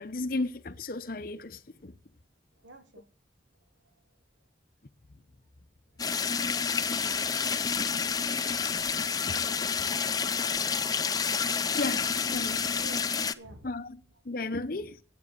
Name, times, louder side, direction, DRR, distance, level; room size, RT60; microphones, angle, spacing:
voice 1, 0.0-1.9 9.3-9.4 11.7-12.7 13.6-15.0, left 2 dB, 50° left, 0.8 m, -34 dB
voice 2, 2.6-3.0 12.8-13.1 13.3-13.7, right 2 dB, 80° right, 1.8 m, -51 dB
sound 1, 6.0-13.3, left 6 dB, 20° left, 0.5 m, -29 dB
9.9 x 8.8 x 6.6 m
head